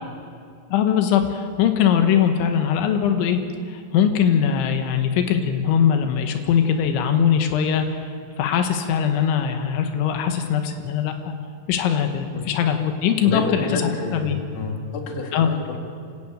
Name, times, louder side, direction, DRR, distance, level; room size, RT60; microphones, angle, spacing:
voice 1, 0.7-3.4 3.7-11.3 11.7-14.4 15.3-15.5, left 8 dB, 90° left, 6 dB, 3.6 m, -21 dB
voice 2, 13.2-15.8, left 4 dB, 50° left, 1 dB, 3.5 m, -29 dB
27.0 x 13.0 x 8.7 m, 2.3 s
omnidirectional pair, 5.2 m